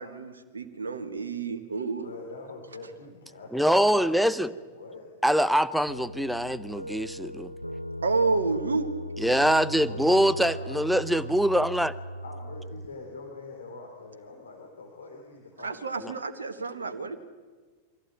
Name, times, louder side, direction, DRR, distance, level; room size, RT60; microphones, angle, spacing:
voice 1, 0.0-2.0 8.0-8.9 15.6-17.1, right 4 dB, 70° right, 1.5 m, -29 dB
voice 2, 2.0-5.1 9.8-11.0 12.2-16.3, left 3 dB, 70° left, 3.3 m, -44 dB
voice 3, 3.5-4.5 5.2-7.5 9.2-11.9 16.0-16.1, equal, ahead, 0.8 m, -24 dB
sound 1, 5.9-12.9, equal, 90° right, 0.7 m, -38 dB
24.5 x 16.0 x 8.9 m
figure-of-eight pair, 90°, 0 cm